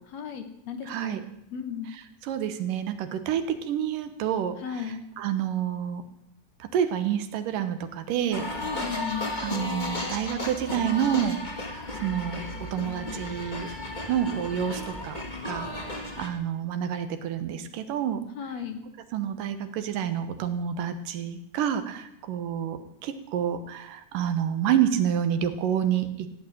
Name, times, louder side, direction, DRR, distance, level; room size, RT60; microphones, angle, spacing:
voice 1, 0.1-1.3 1.5-1.9 4.6-5.0 8.6-9.3 18.4-18.9, left 7 dB, 65° left, 8 dB, 2.2 m, -35 dB
voice 2, 0.9-1.2 1.9-6.0 6.6-8.4 9.4-11.4 11.6-12.4 12.7-13.7 14.1-18.2 19.1-26.3, right 9 dB, 90° right, 10 dB, 2.9 m, -29 dB
sound 1, 8.3-16.3, left 2 dB, 20° left, 1.5 m, -34 dB
15.5 x 8.9 x 9.0 m, 0.83 s
omnidirectional pair, 3.7 m